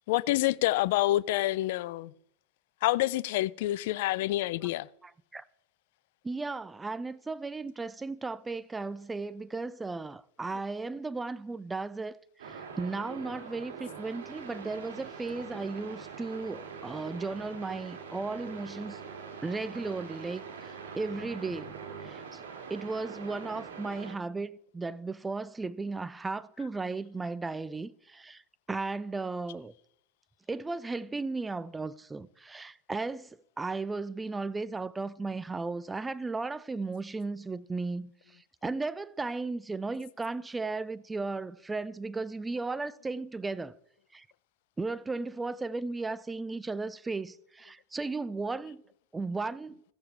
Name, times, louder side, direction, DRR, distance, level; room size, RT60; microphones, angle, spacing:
voice 1, 0.1-2.1 2.8-4.9 10.5-10.6 26.6-26.7, left 16 dB, 70° left, 0.3 m, -27 dB
voice 2, 5.0-5.4 6.2-19.0 19.4-21.8 22.0-22.4 22.7-28.4 28.7-29.7 30.5-33.3 33.6-43.7 44.1-44.2 44.8-48.8 49.1-49.8, right 3 dB, 15° right, 0.4 m, -35 dB
sound 1, 12.4-24.2, right 6 dB, 85° right, 2.0 m, -43 dB
16.0 x 6.9 x 3.3 m
hypercardioid pair, 105°, 0 cm